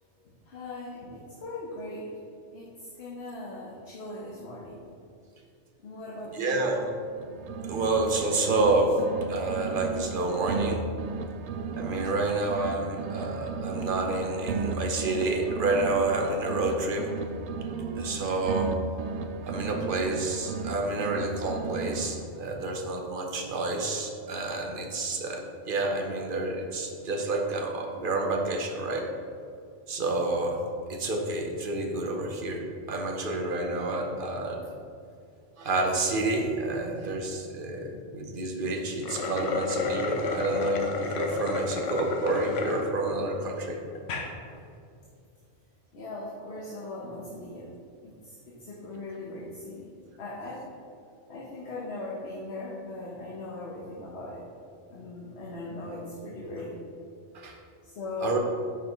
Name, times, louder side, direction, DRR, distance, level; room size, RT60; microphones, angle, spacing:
voice 1, 0.4-2.1 2.5-4.9 5.8-6.6 45.9-47.7 48.0-49.9 50.2-50.6 51.3-54.4 54.9-56.7 57.8-58.4, left 2 dB, 60° left, -5 dB, 1.3 m, -39 dB
voice 2, 6.3-6.9 7.7-9.0 9.3-10.8 11.7-17.1 17.9-18.7 19.4-29.1 29.9-30.6 30.9-34.6 35.6-43.8 57.3-57.6 58.2-58.4, right 2 dB, 50° right, 2 dB, 1.0 m, -29 dB
sound 1, 7.1-8.7 9.0-12.7 13.0-16.7 17.0-20.7 21.0-22.4, right 5 dB, 70° right, 0.8 m, -35 dB
sound 2, 38.9-42.8 43.4-43.5 43.9-44.3, left 3 dB, 75° left, 1.1 m, -31 dB
9.7 x 5.7 x 3.1 m, 2.4 s
omnidirectional pair, 1.3 m